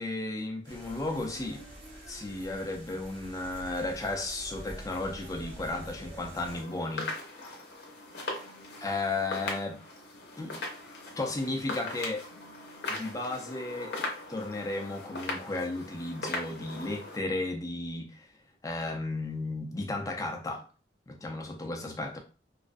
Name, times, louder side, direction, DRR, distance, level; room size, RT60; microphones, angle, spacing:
voice 1, 0.0-1.7 2.1-7.1 8.8-9.8 10.4-10.6 11.2-12.2 12.9-14.0 14.3-18.3 18.6-20.6 21.1-22.2, left 2 dB, 20° left, 0.4 m, -34 dB
sound 1, 0.6-6.6, right 1 dB, 75° right, 1.0 m, -46 dB
sound 2, 6.4-17.2, left 2 dB, 60° left, 0.6 m, -39 dB
2.3 x 2.1 x 2.5 m
head